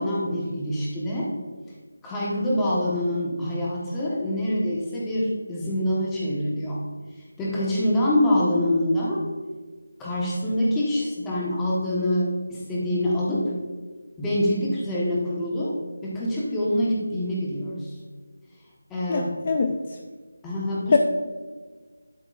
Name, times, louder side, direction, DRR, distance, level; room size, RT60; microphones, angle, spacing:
voice 1, 0.0-1.3 2.0-6.8 7.4-9.3 10.0-13.5 14.2-17.9 18.9-19.5 20.4-21.0, left 1 dB, 5° left, -6 dB, 1.3 m, -25 dB
voice 2, 19.1-19.8 20.9-21.0, left 4 dB, 35° left, 5 dB, 0.4 m, -22 dB
12.0 x 6.1 x 2.5 m, 1.4 s
figure-of-eight pair, 170°, 0 cm